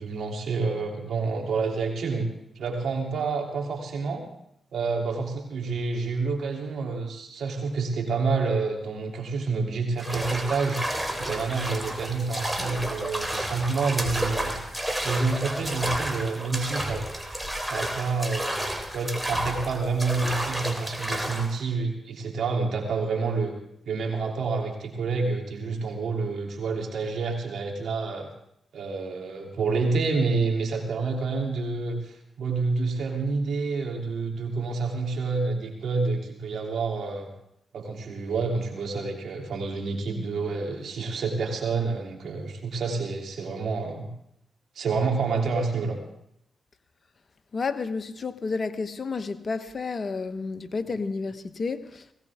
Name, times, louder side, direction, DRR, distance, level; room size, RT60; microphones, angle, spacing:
voice 1, 0.0-2.3 2.5-4.3 4.7-10.8 11.2-14.5 15.0-17.0 17.7-18.6 18.9-23.5 23.9-28.3 28.7-37.3 37.7-44.1 44.7-46.0, right 4 dB, 75° right, 3.1 m, -28 dB
sound 1, 10.0-21.5, right 1 dB, 5° right, 3.4 m, -31 dB
voice 2, 47.5-52.1, left 4 dB, 50° left, 1.2 m, -31 dB
19.5 x 17.0 x 3.7 m
supercardioid pair, 50°, 0 cm